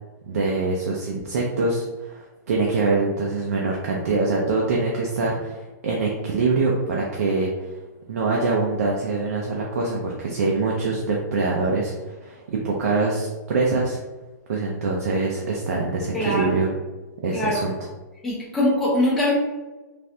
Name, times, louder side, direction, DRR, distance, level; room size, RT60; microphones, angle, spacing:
voice 1, 0.3-7.7 8.1-14.0 14.5-16.7 17.2-17.7, right 3 dB, 55° right, -2 dB, 0.5 m, -24 dB
voice 2, 16.1-16.6 17.3-17.6 18.2-19.3, left 1 dB, ahead, -7 dB, 0.4 m, -22 dB
3.3 x 2.4 x 2.7 m, 1.2 s
hypercardioid pair, 175°, 10 cm